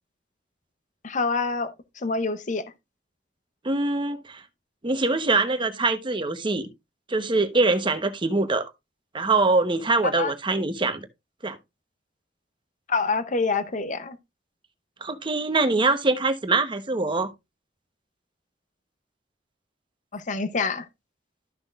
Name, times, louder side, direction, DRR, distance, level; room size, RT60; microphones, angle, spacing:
voice 1, 1.0-1.7 2.0-2.6 10.0-10.3 12.9-14.2 20.1-20.9, left 4 dB, 45° left, 0.7 m, -26 dB
voice 2, 3.6-4.4 4.8-6.7 7.1-8.7 9.1-11.0 11.4-11.6 15.0-17.3, right 3 dB, 30° right, 1.0 m, -23 dB
13.0 x 6.1 x 2.4 m
head